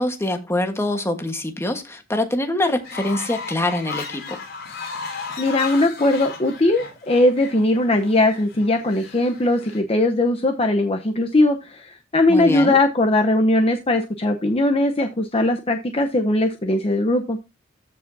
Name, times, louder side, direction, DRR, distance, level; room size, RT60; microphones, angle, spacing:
voice 1, 0.0-4.4 12.3-12.8, left 1 dB, 15° left, 6 dB, 1.3 m, -24 dB
Fowl, 2.8-9.8, left 4 dB, 55° left, 5.1 m, -35 dB
voice 2, 5.4-17.4, left 2 dB, 30° left, 5 dB, 0.8 m, -19 dB
14.5 x 5.2 x 2.7 m, 0.24 s
head